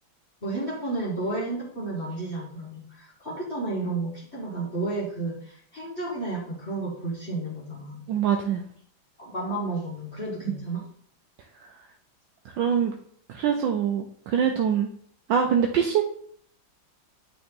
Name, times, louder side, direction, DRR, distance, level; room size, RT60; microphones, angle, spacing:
voice 1, 0.4-8.1 9.2-10.8, right 2 dB, 35° left, -7 dB, 1.7 m, -32 dB
voice 2, 8.1-8.6 10.5-10.6 12.5-12.9 13.3-14.9 15.3-16.0, right 8 dB, 75° right, 4 dB, 1.3 m, -24 dB
8.7 x 3.9 x 3.7 m, 0.62 s
omnidirectional pair, 2.2 m